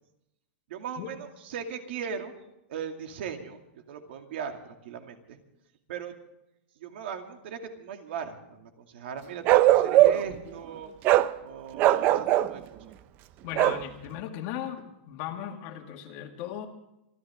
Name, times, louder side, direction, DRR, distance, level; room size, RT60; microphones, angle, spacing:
voice 1, 0.7-2.3 2.7-5.4 5.9-6.1 6.8-10.9 11.4-12.8, right 7 dB, 60° right, 5 dB, 2.4 m, -38 dB
Bark, 9.5-10.4 11.0-11.3 11.8-12.5 13.6-13.8, right 14 dB, 25° right, 0.5 m, -20 dB
voice 2, 13.4-16.7, left 10 dB, 35° left, 4 dB, 2.1 m, -37 dB
27.0 x 12.5 x 3.7 m, 0.88 s
supercardioid pair, 165°, 7 cm